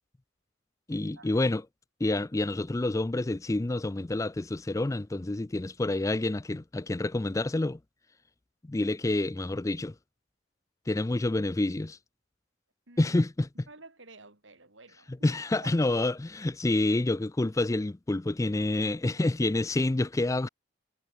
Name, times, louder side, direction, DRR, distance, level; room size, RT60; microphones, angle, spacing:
voice 1, 0.9-1.6 2.0-7.8 8.7-9.9 10.9-12.0 13.0-13.5 15.2-20.5, left 2 dB, 15° left, 0.4 m, -28 dB
voice 2, 12.9-13.2 13.7-15.3 15.6-15.7, right 3 dB, 70° right, 6.0 m, -51 dB
head